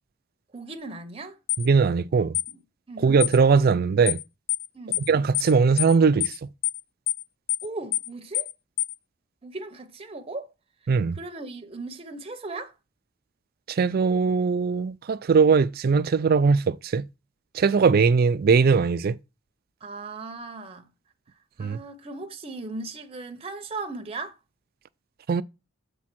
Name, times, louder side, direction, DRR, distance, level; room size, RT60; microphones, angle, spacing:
voice 1, 0.5-1.4 2.5-2.6 2.9-3.1 4.7-5.1 7.6-8.5 9.4-10.5 11.1-12.7 19.8-20.9 21.6-24.3, right 3 dB, 30° right, 0.7 m, -37 dB
sound 1, 1.5-1.7 2.3-2.5 3.2-3.4 4.1-4.2 4.5-4.7 4.9-5.1 5.3-5.5 5.8-5.9 6.2-6.4 6.6-6.8 7.1-7.2 7.5-7.7 7.9-8.1 8.3-8.5 8.8-8.9, left 16 dB, 40° left, 0.5 m, -26 dB
voice 2, 1.6-2.4 3.0-4.2 5.1-6.5 10.9-11.2 13.7-17.1 17.5-19.2 21.6-21.8 25.3-25.4, right 5 dB, 50° right, 0.4 m, -20 dB
7.4 x 3.4 x 5.9 m
head